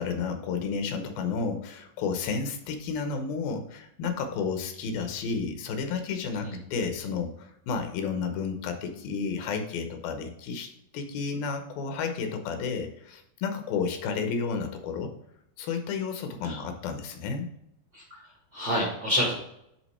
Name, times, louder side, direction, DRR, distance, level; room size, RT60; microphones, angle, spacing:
voice 1, 0.0-15.1 15.6-17.5, left 5 dB, 75° left, 6 dB, 2.6 m, -32 dB
voice 2, 17.9-19.3, equal, 50° right, -2 dB, 1.4 m, -29 dB
10.5 x 3.9 x 4.2 m, 0.78 s
omnidirectional pair, 4.4 m